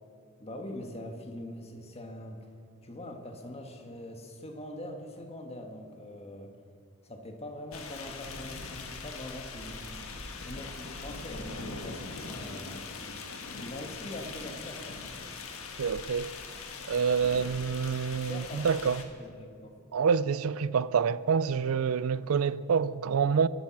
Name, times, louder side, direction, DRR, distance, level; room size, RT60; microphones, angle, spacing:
voice 1, 0.4-2.5 2.8-6.5 7.0-10.1 10.4-12.9 13.6-15.0 18.3-18.8 19.2-19.8, left 1 dB, 30° left, 1.6 m, -43 dB
sound 1, 7.7-19.0, left 4 dB, 80° left, 1.6 m, -41 dB
voice 2, 15.8-16.3 16.9-19.0 19.9-23.5, right 6 dB, 90° right, 0.4 m, -27 dB
24.5 x 9.1 x 6.0 m
head